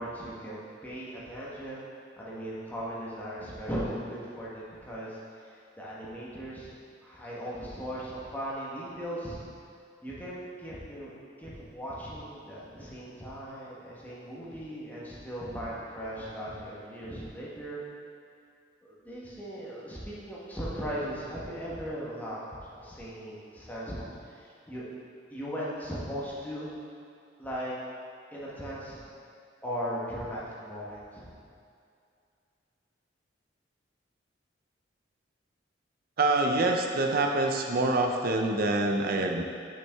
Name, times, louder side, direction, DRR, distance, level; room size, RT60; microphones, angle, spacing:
voice 1, 0.0-1.8 2.2-5.2 5.5-6.7 7.0-9.4 10.0-11.1 11.4-17.8 18.8-24.1 24.3-24.8 25.3-26.7 27.4-27.7 28.3-29.0 29.6-31.4, equal, 10° left, -7 dB, 1.1 m, -38 dB
voice 2, 36.2-39.4, right 2 dB, 50° right, 3 dB, 0.5 m, -26 dB
6.1 x 5.7 x 3.5 m, 2.4 s
head